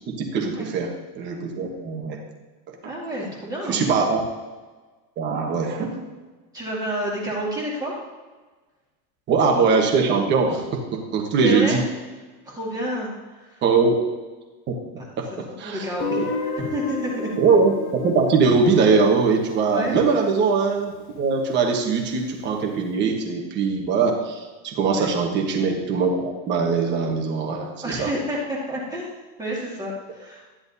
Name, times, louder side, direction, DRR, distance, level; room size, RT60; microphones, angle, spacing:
voice 1, 0.1-2.2 2.7-2.9 3.7-4.3 5.2-6.0 9.3-11.8 13.6-13.9 14.7-14.8 15.2-16.2 17.4-28.1, right 4 dB, 25° right, 2 dB, 1.2 m, -22 dB
voice 2, 2.8-3.8 6.5-7.9 11.4-11.8 12.5-13.6 15.0-17.3 19.7-20.0 24.8-25.1 27.8-29.1 29.4-30.4, right 1 dB, 10° right, -5 dB, 1.9 m, -30 dB
Guitar, 16.0-20.9, left 4 dB, 90° left, 2.1 m, -33 dB
13.0 x 10.5 x 2.7 m, 1.3 s
supercardioid pair, 175°, 44 cm